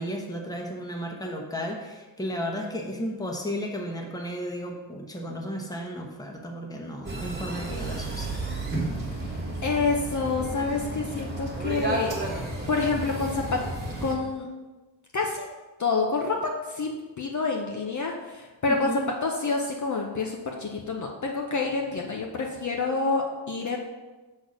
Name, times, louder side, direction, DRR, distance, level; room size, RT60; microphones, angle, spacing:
voice 1, 0.0-8.4 18.7-19.0, equal, 10° left, 0 dB, 1.0 m, -34 dB
sound 1, 7.0-14.1, right 2 dB, 20° right, 1.6 m, -32 dB
voice 2, 9.6-12.2 12.7-13.6 14.0-14.5 15.1-15.5 15.8-23.8, left 4 dB, 40° left, 0 dB, 0.7 m, -28 dB
6.4 x 4.2 x 6.3 m, 1.2 s
wide cardioid pair, 145°, 45 cm